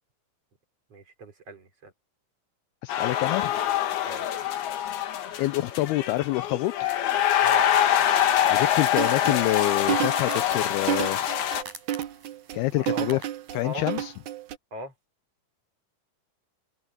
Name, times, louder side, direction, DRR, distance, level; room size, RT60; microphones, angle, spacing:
voice 1, 0.9-1.9 4.1-4.3 7.4-7.7 12.7-13.2 13.6-13.9 14.7-14.9, equal, 35° right, 5.4 m, -38 dB
voice 2, 2.8-3.5 5.4-6.9 8.5-11.2 12.5-13.2 13.5-14.1, left 17 dB, 80° left, 2.4 m, -27 dB
sound 1, 2.9-11.6, left 11 dB, 65° left, 3.7 m, -25 dB
sound 2, 5.3-14.1, right 4 dB, 50° right, 9.0 m, -50 dB
sound 3, 8.9-14.6, right 11 dB, 70° right, 1.8 m, -31 dB
omnidirectional pair, 4.9 m